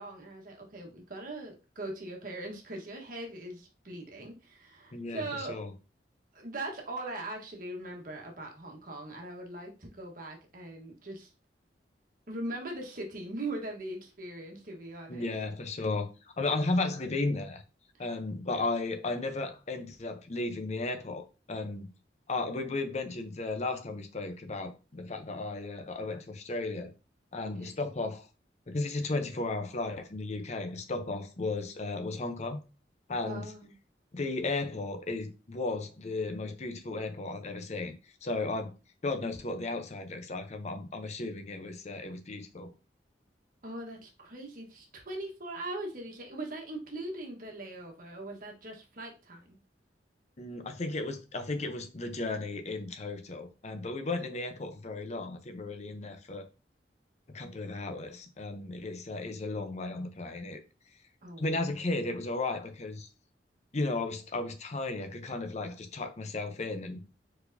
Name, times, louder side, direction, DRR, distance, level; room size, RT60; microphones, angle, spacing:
voice 1, 0.0-5.6 6.3-11.3 12.3-15.3 18.0-18.2 27.5-27.7 33.3-33.7 43.6-49.6 61.2-61.4, right 2 dB, 50° right, 1.3 m, -40 dB
voice 2, 4.9-5.7 15.1-16.1 16.4-17.6 18.0-21.9 22.3-26.9 27.3-28.3 28.7-32.6 33.1-33.5 34.1-38.7 39.0-42.7 50.4-56.5 57.3-60.6 61.4-63.1 63.7-67.0, left 2 dB, 40° left, 0.7 m, -34 dB
4.5 x 4.2 x 2.7 m
head